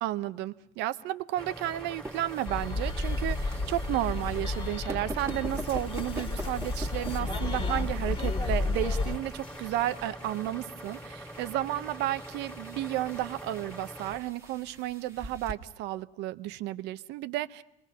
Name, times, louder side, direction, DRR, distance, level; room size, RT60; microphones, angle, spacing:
voice 1, 0.0-17.6, right 14 dB, 70° right, 14 dB, 0.7 m, -32 dB
sound 1, 1.3-14.2, equal, 5° left, 2.3 m, -44 dB
sound 2, 1.6-15.5, right 2 dB, 15° right, 1.5 m, -45 dB
sound 3, 2.5-9.2, left 3 dB, 30° left, 1.8 m, -32 dB
26.5 x 20.5 x 5.5 m, 0.81 s
supercardioid pair, 105°, 18 cm